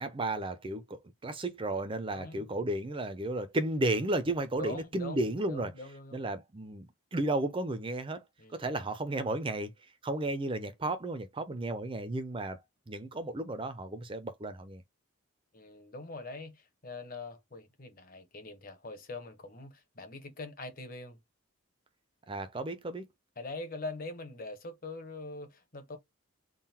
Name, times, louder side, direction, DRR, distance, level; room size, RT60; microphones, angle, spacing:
voice 1, 0.0-5.7 6.1-6.9 7.1-8.2 8.5-9.7 10.0-12.6 12.9-14.8 22.3-23.1, right 2 dB, 25° right, 0.5 m, -33 dB
voice 2, 2.1-2.5 4.6-6.3 8.4-8.7 15.5-21.2 23.4-26.0, left 2 dB, 40° left, 1.0 m, -43 dB
3.8 x 2.2 x 4.1 m
head